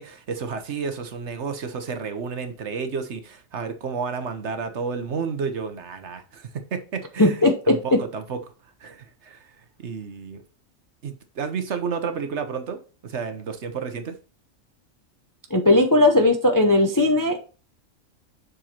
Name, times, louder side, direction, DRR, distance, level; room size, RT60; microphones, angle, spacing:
voice 1, 0.0-7.4 7.7-8.4 8.8-9.5 9.8-10.4 11.0-14.2, right 5 dB, 60° right, 1.1 m, -31 dB
voice 2, 7.2-8.0 15.5-17.4, left 2 dB, 25° left, 0.5 m, -18 dB
7.5 x 6.3 x 2.9 m
omnidirectional pair, 1.4 m